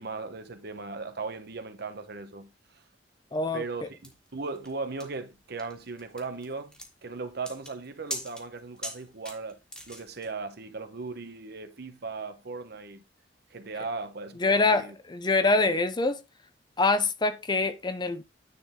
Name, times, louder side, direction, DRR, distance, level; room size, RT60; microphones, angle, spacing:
voice 1, 0.0-2.8 3.5-6.7 7.0-9.6 9.9-13.0 13.5-14.9, right 4 dB, 60° right, 1.0 m, -37 dB
voice 2, 3.3-3.6 14.4-14.8 15.1-16.2 16.8-18.2, left 3 dB, 25° left, 0.6 m, -24 dB
sound 1, 4.0-10.3, equal, 5° left, 1.6 m, -42 dB
9.7 x 3.9 x 3.6 m
head